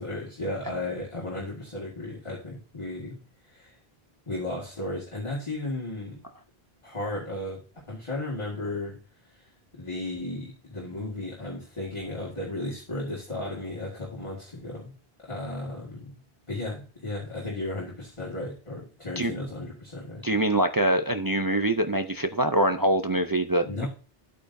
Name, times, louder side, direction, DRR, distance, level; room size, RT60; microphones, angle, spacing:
voice 1, 0.0-3.2 3.5-3.8 4.3-6.2 6.8-7.6 7.9-9.5 9.8-14.9 15.2-16.1 16.5-20.2 23.6-23.9, left 2 dB, 30° left, 2.0 m, -34 dB
voice 2, 20.2-23.9, right 1 dB, 30° right, 0.4 m, -24 dB
11.0 x 8.5 x 2.7 m
omnidirectional pair, 1.1 m